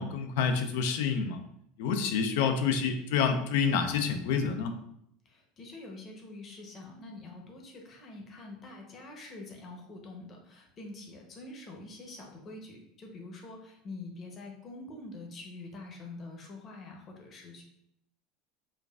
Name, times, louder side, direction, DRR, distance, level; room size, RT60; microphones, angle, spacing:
voice 1, 0.0-1.4 1.8-4.8, left 6 dB, 75° left, 7 dB, 0.5 m, -28 dB
voice 2, 5.2-17.6, left 2 dB, 35° left, 1 dB, 0.8 m, -46 dB
5.1 x 2.4 x 2.4 m, 0.74 s
supercardioid pair, 135°, 0 cm